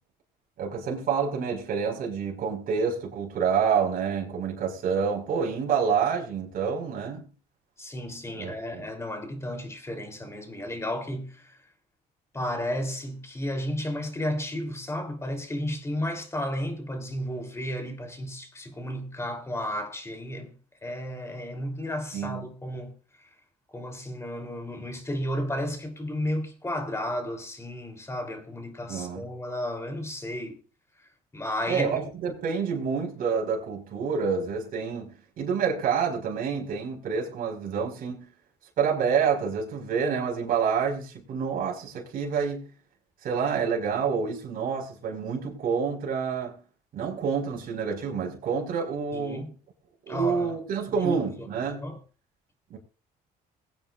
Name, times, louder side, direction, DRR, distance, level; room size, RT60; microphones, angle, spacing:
voice 1, 0.6-7.3 8.4-8.8 22.1-22.4 28.9-29.2 31.7-38.3 38.8-42.7 43.2-46.6 46.9-49.5 50.1-51.8 52.7-52.8, right 6 dB, 60° right, 4.7 m, -28 dB
voice 2, 7.8-11.6 12.3-20.6 20.8-22.9 23.7-30.6 31.0-31.9 49.1-49.5 50.1-50.6 51.0-52.0, left 1 dB, 15° left, 3.2 m, -33 dB
21.5 x 8.9 x 2.4 m
cardioid pair, 110°, 17 cm